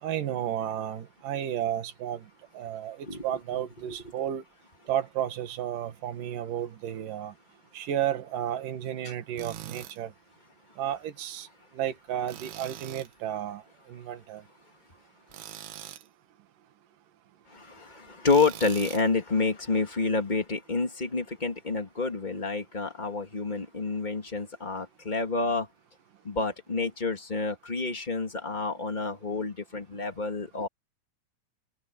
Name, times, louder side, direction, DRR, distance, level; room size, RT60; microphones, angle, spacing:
voice 1, 0.0-2.2 2.5-4.4 4.9-7.3 7.7-10.1 10.8-11.5 11.7-13.6 13.9-14.4, right 11 dB, 60° right, 3.1 m, -32 dB
Tools, 9.4-10.0 12.3-13.1 15.3-16.1 18.3-19.1, right 12 dB, 80° right, 3.6 m, -42 dB
voice 2, 17.5-25.7 26.2-30.7, left 4 dB, 35° left, 0.7 m, -29 dB
omnidirectional pair, 4.7 m